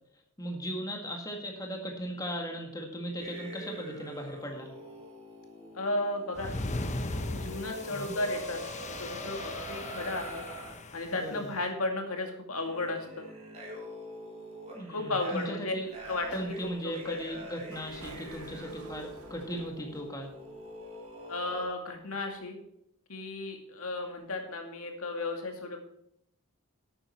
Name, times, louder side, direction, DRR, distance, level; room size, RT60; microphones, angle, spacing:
voice 1, 0.4-4.7 7.9-8.1 11.2-11.5 14.7-15.9 16.3-20.3, equal, 15° left, 1 dB, 1.8 m, -37 dB
sound 1, 3.2-10.7 11.6-11.8 12.5-21.6, equal, 30° right, 3.8 m, -45 dB
voice 2, 5.7-6.6 7.3-8.6 8.9-10.4 10.9-13.3 14.9-15.8 16.1-16.6 16.8-17.3 21.3-22.6 23.1-25.8, left 2 dB, 75° left, 3 dB, 2.3 m, -34 dB
sound 2, 6.3-11.3, left 2 dB, 35° left, 0.9 m, -38 dB
Sliding door, 15.8-21.5, right 2 dB, 85° right, 1.8 m, -51 dB
11.5 x 8.9 x 4.5 m, 0.74 s
head